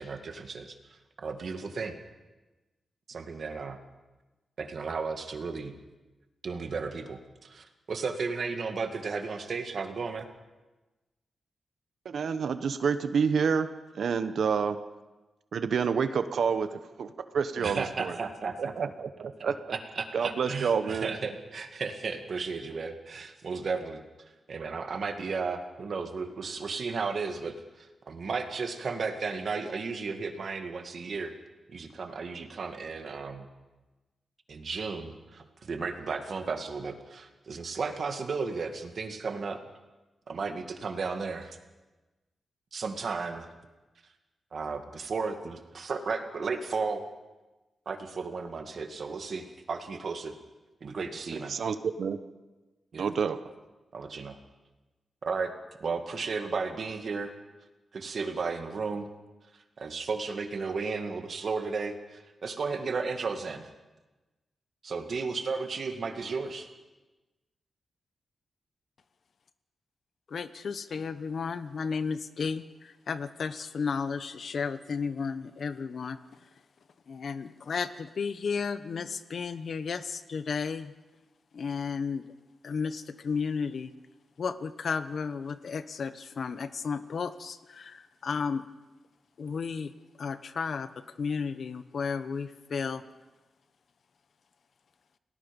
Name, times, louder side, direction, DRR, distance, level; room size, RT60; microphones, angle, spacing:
voice 1, 0.0-2.0 3.1-3.8 4.6-5.8 6.4-10.3 17.6-18.9 19.4-31.3 31.7-33.5 34.5-39.6 40.3-41.6 42.7-43.5 44.5-47.0 47.9-50.3 50.8-51.6 52.9-53.1 53.9-54.4 55.3-55.5 55.8-57.3 57.9-59.1 59.5-63.7 64.8-66.7, right 4 dB, 55° right, 6 dB, 2.1 m, -34 dB
voice 2, 12.0-13.7 13.9-14.8 15.5-16.7 17.0-18.1 18.6-19.6 20.1-21.1 51.5-52.2 53.0-53.4, right 6 dB, 70° right, 10 dB, 1.0 m, -28 dB
voice 3, 70.3-76.2 77.1-80.9 81.5-82.3 82.6-83.9 84.4-88.6 89.4-89.9 90.2-90.9 91.2-93.0, left 5 dB, 60° left, 12 dB, 1.0 m, -33 dB
29.5 x 18.5 x 5.3 m, 1.1 s
wide cardioid pair, 140°, 0 cm